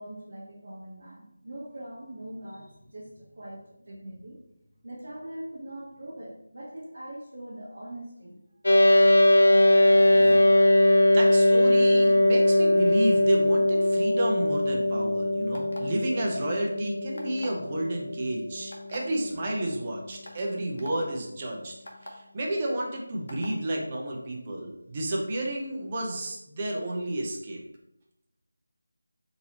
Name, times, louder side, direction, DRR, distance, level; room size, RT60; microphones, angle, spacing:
voice 1, 0.0-4.4 4.8-8.4, right 1 dB, 55° right, -7 dB, 1.0 m, -42 dB
sound 1, 8.6-20.2, left 1 dB, 90° left, 0.4 m, -21 dB
sound 2, 9.8-10.3, equal, 20° left, 1.1 m, -43 dB
voice 2, 11.1-21.7 22.1-27.6, right 1 dB, 20° right, -1 dB, 0.5 m, -31 dB
sound 3, 15.5-16.0 17.2-17.6 18.7-19.0 19.7-19.8 20.2-20.4 20.8-20.9 21.9-22.1 23.3-23.5, left 1 dB, 65° left, 0.8 m, -43 dB
3.8 x 2.7 x 2.9 m, 0.81 s
figure-of-eight pair, 175°, 0 cm